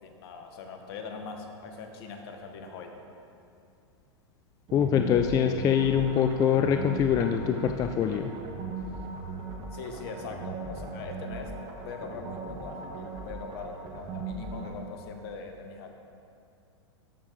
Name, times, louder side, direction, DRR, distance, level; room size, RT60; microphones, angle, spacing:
voice 1, 0.0-3.0 9.7-11.5 11.8-15.9, left 4 dB, 55° left, 4 dB, 1.3 m, -41 dB
voice 2, 4.7-8.3, left 8 dB, 25° left, 6 dB, 0.4 m, -24 dB
sound 1, 4.7-14.8, right 3 dB, 35° right, 1.2 m, -38 dB
12.5 x 6.3 x 3.8 m, 2.6 s
hypercardioid pair, 105°, 15 cm